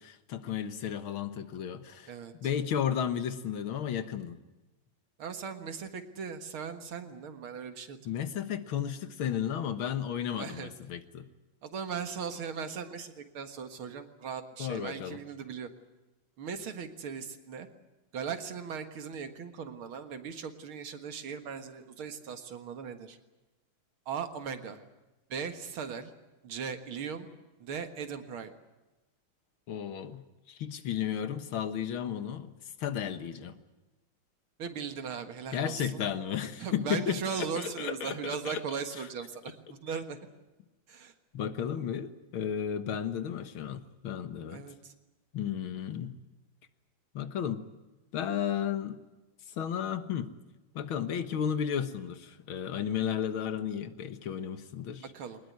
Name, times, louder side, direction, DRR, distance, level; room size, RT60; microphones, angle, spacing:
voice 1, 0.0-2.1 2.4-4.4 8.1-11.3 14.6-15.2 29.7-32.5 32.8-33.5 35.5-38.6 41.3-44.6 45.3-46.2 47.1-47.7 48.1-49.0 49.6-50.3 50.8-55.1, left 9 dB, 80° left, 10 dB, 2.1 m, -33 dB
voice 2, 5.2-8.0 10.4-10.7 11.6-15.7 16.4-17.7 18.1-23.2 24.1-24.8 25.3-26.1 26.4-27.3 27.6-28.5 34.6-36.0 36.6-40.2 40.9-41.1 44.5-44.9 55.0-55.4, right 6 dB, 85° right, 8 dB, 2.5 m, -38 dB
22.5 x 20.0 x 9.5 m, 1.1 s
omnidirectional pair, 2.2 m